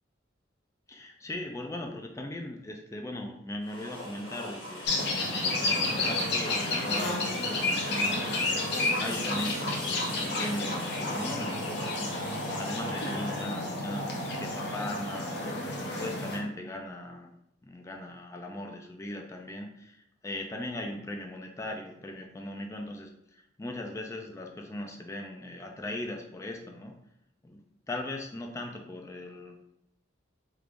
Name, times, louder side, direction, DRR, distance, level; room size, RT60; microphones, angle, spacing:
voice 1, 0.9-5.0 5.6-8.3 9.0-11.8 12.6-14.1 14.3-15.3 15.9-17.3 17.6-26.9 27.4-27.6 27.9-29.6, left 1 dB, 15° left, 2 dB, 0.3 m, -39 dB
sound 1, 3.6-13.7, left 1 dB, 85° left, 1.3 m, -40 dB
sound 2, 4.8-16.4, left 2 dB, 60° left, 0.7 m, -31 dB
3.4 x 3.2 x 2.5 m, 0.78 s
head